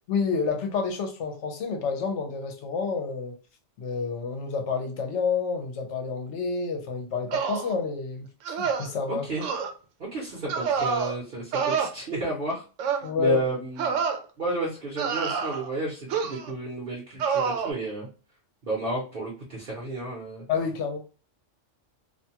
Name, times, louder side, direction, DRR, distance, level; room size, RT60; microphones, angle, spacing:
voice 1, 0.1-3.4 3.8-9.2 13.0-13.4 20.5-21.0, left 5 dB, 70° left, 4 dB, 1.0 m, -29 dB
sound 1, 7.3-7.7 8.5-8.9 9.4-9.7 10.5-11.1 11.5-11.9 12.8-13.1 13.8-14.2 15.0-15.7 16.1-16.5 17.2-17.7, right 6 dB, 85° right, 0.9 m, -27 dB
voice 2, 9.1-9.5 10.0-14.0 14.4-18.1 18.6-20.4, right 2 dB, 50° right, -5 dB, 0.9 m, -32 dB
2.5 x 2.3 x 2.7 m, 0.35 s
omnidirectional pair, 1.3 m